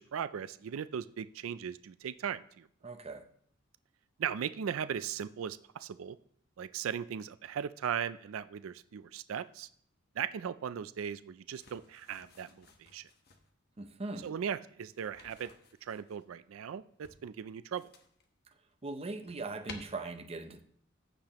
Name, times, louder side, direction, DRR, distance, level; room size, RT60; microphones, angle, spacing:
voice 1, 0.0-2.7 4.2-6.2 6.6-9.7 10.2-13.1 14.2-15.5 15.8-17.9, right 8 dB, 90° right, 0.4 m, -38 dB
voice 2, 2.8-3.3 13.8-14.3 18.8-20.6, right 3 dB, 30° right, 0.6 m, -40 dB
sound 1, 11.5-13.5 14.9-16.2 17.0-18.3 18.7-19.8, left 4 dB, 50° left, 1.1 m, -54 dB
15.0 x 6.7 x 3.0 m
head